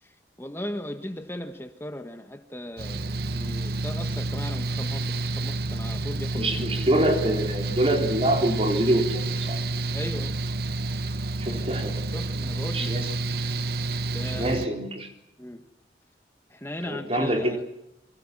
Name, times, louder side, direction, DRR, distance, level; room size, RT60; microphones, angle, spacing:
voice 1, 0.0-6.5 9.6-10.4 11.6-11.7 12.1-13.0 14.1-14.5 15.4-15.7 16.5-17.6, left 1 dB, 15° left, 6 dB, 1.5 m, -38 dB
Mechanical fan, 2.8-14.7, right 2 dB, 60° right, 0.9 m, -29 dB
voice 2, 6.3-9.6 11.4-12.1 12.7-13.3 14.4-15.1 16.9-17.6, right 1 dB, 35° right, 4 dB, 4.1 m, -25 dB
28.5 x 25.0 x 6.1 m, 0.85 s
head